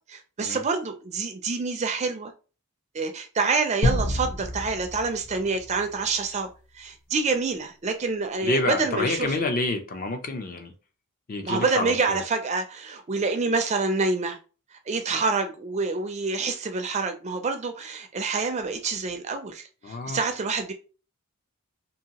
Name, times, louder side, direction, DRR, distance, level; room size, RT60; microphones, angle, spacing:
voice 1, 0.1-2.3 2.9-6.5 6.7-9.4 11.4-14.4 14.9-20.7, right 4 dB, 30° right, 0.4 m, -27 dB
sound 1, 3.8-6.4, left 1 dB, 85° left, 1.0 m, -28 dB
voice 2, 8.4-10.7 11.3-12.2 19.8-20.2, left 2 dB, 40° left, 0.5 m, -28 dB
2.7 x 2.6 x 2.8 m
head